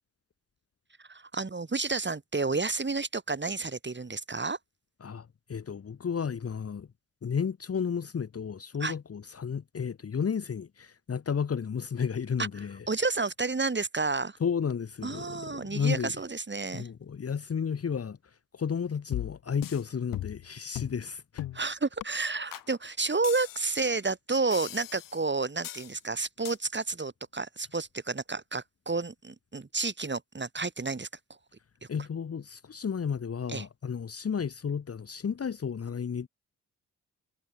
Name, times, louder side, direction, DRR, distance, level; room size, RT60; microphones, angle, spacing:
voice 1, 1.1-4.6 8.8-8.9 12.4-12.5 12.9-14.4 15.0-16.9 21.5-31.1 33.5-33.7, right 3 dB, 30° right, 5.3 m, -31 dB
voice 2, 5.0-6.9 7.2-12.9 14.4-16.1 16.7-21.4 31.9-36.3, left 6 dB, 40° left, 1.4 m, -32 dB
sound 1, 19.1-19.8 20.1-20.5 20.7-21.0 21.4-21.6 22.0-22.1 22.5-22.7 23.2-23.9 24.5-25.2 25.6-25.9 26.4-26.6, left 13 dB, 65° left, 0.9 m, -38 dB
hypercardioid pair, 45°, 37 cm